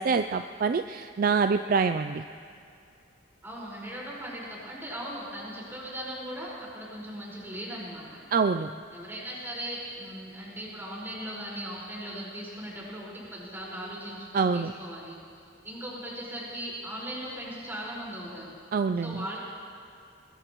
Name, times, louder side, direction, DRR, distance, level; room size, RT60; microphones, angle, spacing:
voice 1, 0.0-2.2 8.3-8.7 14.3-14.7 18.7-19.2, right 5 dB, 45° right, 9 dB, 0.3 m, -25 dB
voice 2, 3.4-8.2 8.9-18.6 19.0-19.4, equal, 10° right, -6 dB, 4.8 m, -38 dB
22.5 x 21.0 x 3.1 m, 2.5 s
head